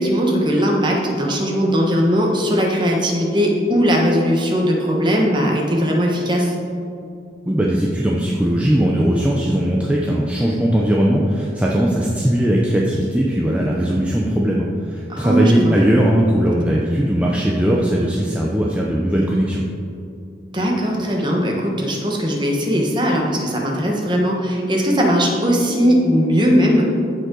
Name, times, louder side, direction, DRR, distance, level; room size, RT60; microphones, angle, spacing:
voice 1, 0.0-6.5 15.1-15.7 20.5-26.9, equal, 25° right, 0 dB, 1.2 m, -19 dB
voice 2, 7.5-19.6, equal, 5° right, -4 dB, 0.6 m, -19 dB
15.0 x 5.4 x 3.9 m, 2.5 s
head